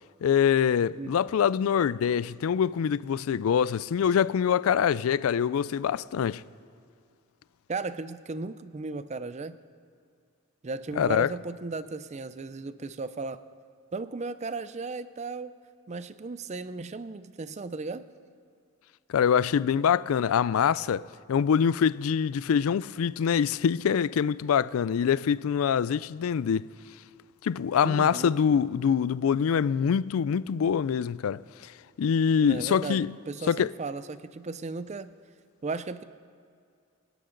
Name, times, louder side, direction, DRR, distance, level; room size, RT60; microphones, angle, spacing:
voice 1, 0.2-6.4 11.0-11.3 19.1-26.7 27.4-31.7 32.0-33.1 33.5-33.7, left 7 dB, 90° left, 0.4 m, -24 dB
voice 2, 7.7-9.6 10.6-13.4 13.9-15.6 15.9-18.1 27.8-28.4 32.4-35.1 35.6-36.0, right 3 dB, 35° right, 0.5 m, -36 dB
27.5 x 12.0 x 3.9 m
head